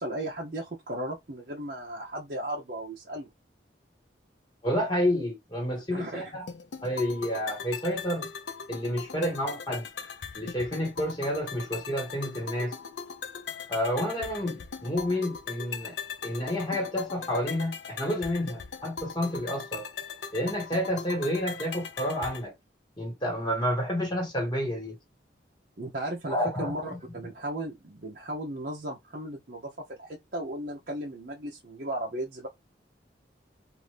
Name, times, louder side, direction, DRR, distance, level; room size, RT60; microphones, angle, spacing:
voice 1, 0.0-3.3 5.9-6.4 25.8-32.5, right 1 dB, 50° right, 0.7 m, -36 dB
voice 2, 4.6-6.5 6.8-8.3 8.7-9.9 10.3-12.7 13.7-15.9 16.2-19.9 20.3-22.5 23.0-24.9 26.3-26.7, equal, 25° left, 1.6 m, -29 dB
sound 1, 6.5-22.5, left 6 dB, 75° left, 0.5 m, -40 dB
2.6 x 2.5 x 3.2 m
head